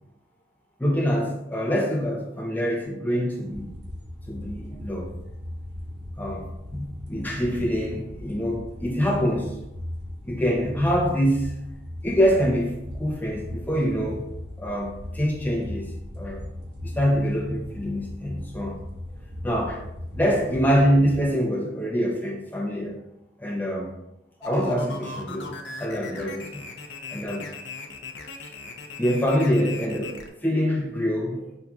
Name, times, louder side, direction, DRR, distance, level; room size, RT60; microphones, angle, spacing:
voice 1, 0.8-3.8 4.3-5.1 6.2-9.6 10.2-11.5 12.0-14.3 14.6-16.5 16.8-18.8 19.4-19.8 20.1-23.0 23.4-23.9 24.4-26.6 27.1-27.5 29.0-31.6, equal, 10° left, -2 dB, 0.6 m, -25 dB
sound 1, 3.5-21.2, left 1 dB, 75° right, 1.2 m, -38 dB
sound 2, 24.4-30.3, left 4 dB, 75° left, 0.5 m, -38 dB
5.7 x 2.6 x 2.3 m, 0.86 s
head